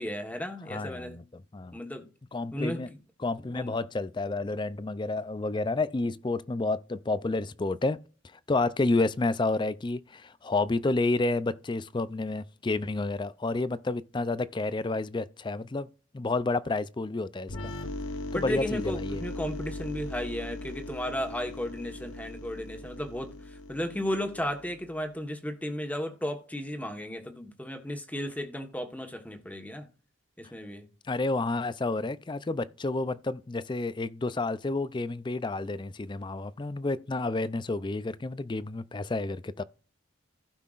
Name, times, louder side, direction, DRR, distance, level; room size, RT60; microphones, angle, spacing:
voice 1, 0.0-1.2 1.7-2.1 2.5-3.0 3.5-3.7 18.3-29.9 30.4-30.9, equal, 10° left, 1.3 m, -34 dB
voice 2, 0.7-1.8 2.3-2.9 3.2-8.0 8.3-15.9 16.1-17.7 18.3-19.2 31.1-39.6, left 2 dB, 25° left, 0.4 m, -30 dB
sound 1, 17.5-25.1, left 2 dB, 80° left, 1.0 m, -39 dB
16.0 x 5.7 x 2.5 m
head